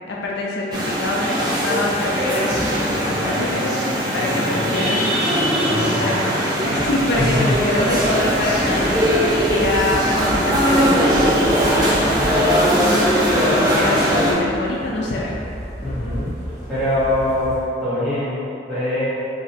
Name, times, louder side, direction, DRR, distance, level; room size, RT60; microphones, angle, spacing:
voice 1, 0.1-5.2 5.7-6.1 6.6-8.8 9.2-12.2 13.5-15.3, left 2 dB, 75° left, -3 dB, 0.5 m, -25 dB
sound 1, 0.7-14.3, equal, 25° right, 0.6 m, -20 dB
voice 2, 4.0-4.8 5.6-6.2 7.2-7.5 15.8-16.3 16.7-19.1, left 1 dB, 5° left, -14 dB, 1.2 m, -24 dB
sound 2, 6.7-17.7, equal, 40° left, 1.1 m, -33 dB
2.9 x 2.7 x 4.1 m, 2.6 s
head